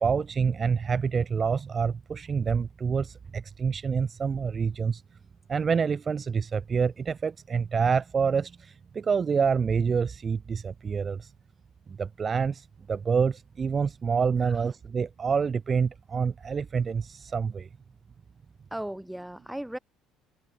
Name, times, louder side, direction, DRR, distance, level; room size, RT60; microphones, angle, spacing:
voice 1, 0.0-5.0 5.5-11.3 11.9-17.7, right 6 dB, 35° right, 0.7 m, -27 dB
voice 2, 18.7-19.8, right 1 dB, 5° right, 3.5 m, -36 dB
supercardioid pair, 80°, 0 cm